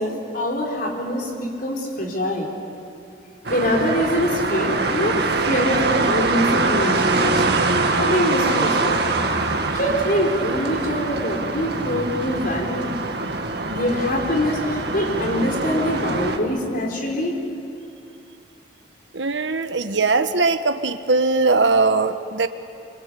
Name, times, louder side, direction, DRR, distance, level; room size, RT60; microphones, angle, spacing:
voice 1, 0.0-2.5 3.5-5.2 5.4-7.4 7.9-9.0 9.7-12.9 13.6-17.4, left 1 dB, 50° left, 0 dB, 4.7 m, -24 dB
sound 1, 3.4-16.4, right 3 dB, 60° right, 1.9 m, -23 dB
voice 2, 19.1-22.5, right 3 dB, 80° right, 9 dB, 1.3 m, -20 dB
25.5 x 24.5 x 8.4 m, 2.7 s
head